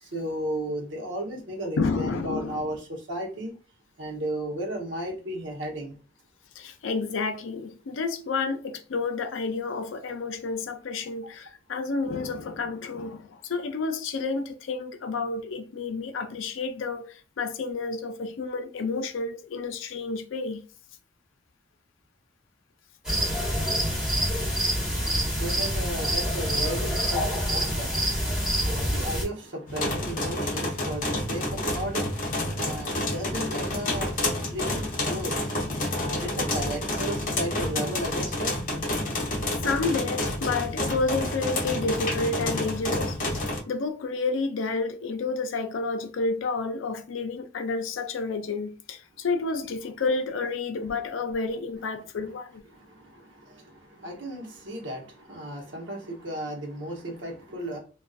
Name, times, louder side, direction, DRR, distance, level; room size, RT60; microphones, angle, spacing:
voice 1, 0.0-3.6 4.0-6.0 25.0-35.4 35.9-38.5 52.7-57.8, right 1 dB, 75° right, 0.9 m, -35 dB
voice 2, 1.8-2.8 6.6-20.6 39.1-39.2 39.6-52.6, left 4 dB, 90° left, 0.4 m, -30 dB
sound 1, 23.0-29.2, equal, 5° right, 1.1 m, -26 dB
sound 2, 29.7-43.6, left 1 dB, 45° left, 0.6 m, -29 dB
2.5 x 2.3 x 2.3 m
head